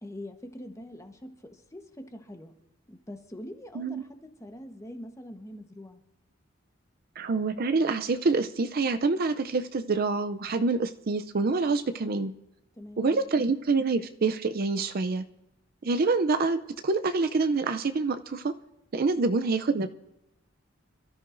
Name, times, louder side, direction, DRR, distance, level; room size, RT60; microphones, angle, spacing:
voice 1, 0.0-2.6 2.9-6.0 12.8-13.2 19.2-19.4, left 1 dB, 15° left, 6 dB, 1.1 m, -44 dB
voice 2, 7.2-12.3 13.0-15.2 15.8-18.5 18.9-19.9, right 3 dB, 50° right, 10 dB, 0.5 m, -26 dB
27.0 x 13.0 x 2.6 m, 0.90 s
head